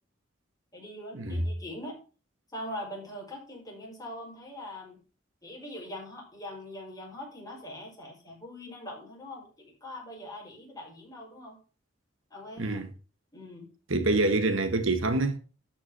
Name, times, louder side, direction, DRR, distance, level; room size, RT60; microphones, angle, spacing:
voice 1, 0.7-2.0 2.5-5.0 5.4-11.6 12.3-12.8 13.3-13.7, left 1 dB, 20° left, 5.0 m, -42 dB
voice 2, 13.9-15.4, right 2 dB, 80° right, 1.5 m, -26 dB
12.5 x 6.1 x 5.5 m
head